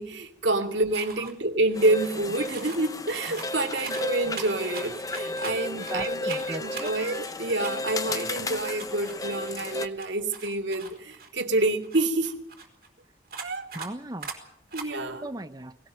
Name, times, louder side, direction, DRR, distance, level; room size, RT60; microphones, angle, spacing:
voice 1, 0.0-12.3 13.4-13.7 14.7-15.3, right 2 dB, 80° right, 4 dB, 2.5 m, -28 dB
sound 1, 0.9-1.3 1.7-2.8 3.1-6.0 6.2-9.7 10.0-12.9 13.3-13.9 14.2-14.4 14.7-14.9, right 5 dB, 50° right, 4.0 m, -42 dB
Casino slots sound effects, 1.7-9.9, left 2 dB, 20° left, 0.8 m, -33 dB
voice 2, 5.8-6.9 13.7-14.3 15.2-15.8, right 2 dB, 20° right, 10 dB, 0.7 m, -37 dB
20.0 x 18.0 x 7.6 m, 0.71 s
head